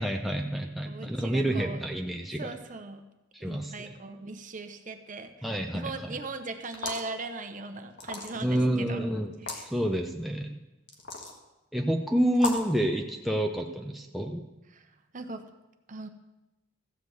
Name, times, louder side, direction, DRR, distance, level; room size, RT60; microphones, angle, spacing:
voice 1, 0.0-2.5 3.3-4.0 5.4-6.1 8.4-9.4 9.6-10.6 11.7-14.5, equal, ahead, 1 dB, 0.6 m, -29 dB
voice 2, 0.9-1.9 2.4-3.0 3.4-9.1 9.4-9.7 14.7-14.8 15.1-15.4 15.9-16.1, right 3 dB, 40° right, 7 dB, 0.9 m, -39 dB
sound 1, 6.6-7.1 8.0-8.6 9.3-9.6 10.9-11.4 12.3-12.7, left 3 dB, 55° left, 1.7 m, -35 dB
14.5 x 5.2 x 7.9 m, 1.0 s
head